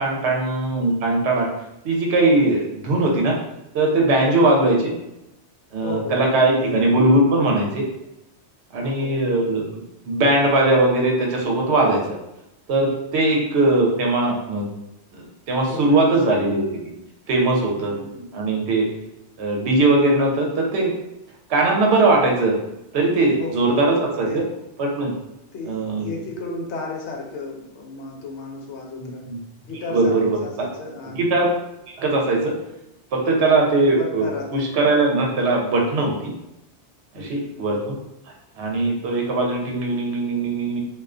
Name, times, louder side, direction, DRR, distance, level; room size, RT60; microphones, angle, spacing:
voice 1, 0.0-1.5 1.8-3.3 3.7-4.9 5.7-7.8 8.7-12.2 12.7-14.7 15.1-16.9 17.3-18.0 18.3-18.9 19.4-20.9 21.5-22.6 22.9-24.4 24.8-25.1 25.7-26.1 29.3-29.4 29.9-30.7 31.1-31.5 32.0-32.5 33.1-34.2 34.5-36.3 37.1-38.0 38.6-40.8, right 2 dB, 75° right, 0 dB, 0.9 m, -20 dB
voice 2, 4.2-4.5 5.8-6.8 8.8-9.5 13.2-13.6 15.6-16.3 17.8-18.3 23.3-24.5 25.5-29.3 29.7-31.3 33.3-33.5 33.8-34.7 37.1-37.7, left 3 dB, 80° left, 0 dB, 0.8 m, -34 dB
2.3 x 2.2 x 2.4 m, 0.88 s
omnidirectional pair, 1.1 m